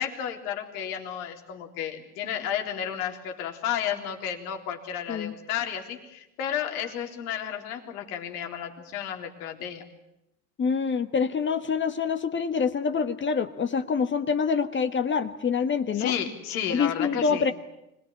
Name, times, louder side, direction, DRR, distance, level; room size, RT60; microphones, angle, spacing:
voice 1, 0.0-9.8 16.0-17.4, left 9 dB, 70° left, 3 dB, 3.9 m, -32 dB
voice 2, 10.6-16.1 16.7-17.5, left 6 dB, 25° left, 10 dB, 1.4 m, -26 dB
25.5 x 19.0 x 10.0 m, 0.87 s
hypercardioid pair, 95°, 47 cm